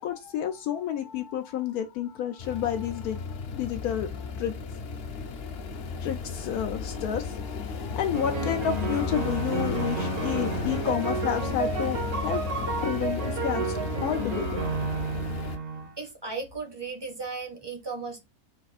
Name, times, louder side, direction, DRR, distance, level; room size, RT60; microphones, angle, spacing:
voice 1, 0.0-3.3 3.5-4.6 6.0-14.6, left 9 dB, 80° left, 1.1 m, -31 dB
sound 1, 2.4-15.6, left 5 dB, 55° left, 0.7 m, -34 dB
sound 2, 8.1-15.9, right 4 dB, 70° right, 1.5 m, -31 dB
voice 2, 16.0-18.2, right 4 dB, 25° right, 0.6 m, -36 dB
4.2 x 2.4 x 4.1 m
omnidirectional pair, 1.6 m